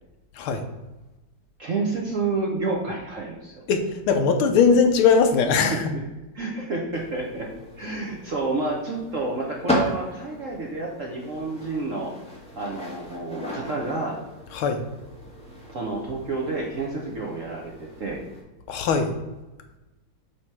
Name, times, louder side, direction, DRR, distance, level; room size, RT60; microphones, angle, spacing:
voice 1, 1.6-3.5 5.7-6.0 6.3-7.5 7.8-12.1 12.5-14.2 15.7-18.2, right 3 dB, 50° right, -1 dB, 0.9 m, -29 dB
voice 2, 3.7-5.9 14.5-14.8 18.7-19.1, left 5 dB, 75° left, 6 dB, 1.6 m, -20 dB
sound 1, 6.9-18.4, left 1 dB, 5° left, 1.3 m, -35 dB
7.5 x 3.1 x 6.0 m, 1.1 s
omnidirectional pair, 2.4 m